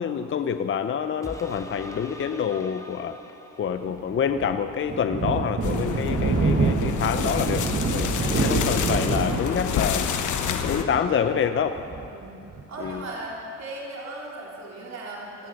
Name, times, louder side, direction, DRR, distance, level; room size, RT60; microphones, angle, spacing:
voice 1, 0.0-3.2 3.6-8.1 8.4-10.1 10.5-11.8 12.8-13.0, left 7 dB, 40° left, 9 dB, 0.6 m, -27 dB
sound 1, 1.2-4.2 4.7-4.8, left 1 dB, 10° left, 1.3 m, -42 dB
Thunder, 3.8-13.0, right 4 dB, 35° right, 1.3 m, -27 dB
sound 2, 5.6-10.8, left 8 dB, 80° left, 1.2 m, -28 dB
voice 2, 8.0-8.5 12.1-12.3 12.7-15.5, right 2 dB, 60° right, -4 dB, 3.9 m, -37 dB
18.0 x 12.5 x 6.4 m, 2.7 s
cardioid pair, 90°, 30 cm